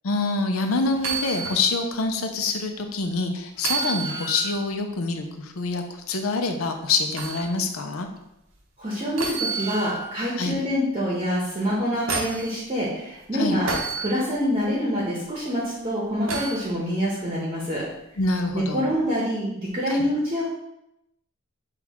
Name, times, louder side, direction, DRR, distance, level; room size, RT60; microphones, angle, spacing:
voice 1, 0.0-8.1 10.4-10.6 13.3-13.6 18.2-18.9 19.9-20.1, left 3 dB, 85° left, 5 dB, 0.6 m, -26 dB
sound 1, 0.9-1.6 2.1-2.2 3.6-4.6 7.2-7.4 9.2-10.1 11.6-12.5 13.7-14.1 16.3-16.6 18.4-18.6, right 4 dB, 65° right, 0.6 m, -29 dB
voice 2, 8.8-13.7 14.0-17.8 18.5-20.4, equal, 25° right, -6 dB, 0.8 m, -26 dB
5.9 x 2.4 x 3.5 m, 0.86 s
head